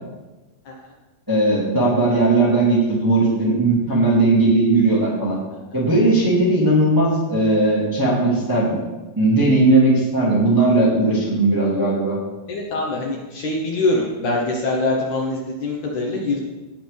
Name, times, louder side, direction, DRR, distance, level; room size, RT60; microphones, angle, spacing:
voice 1, 1.3-5.4 5.7-8.8 9.1-12.2, right 2 dB, 10° right, -6 dB, 1.5 m, -17 dB
voice 2, 12.5-16.4, left 2 dB, 65° left, -1 dB, 2.1 m, -23 dB
18.0 x 6.0 x 3.4 m, 1.1 s
omnidirectional pair, 4.3 m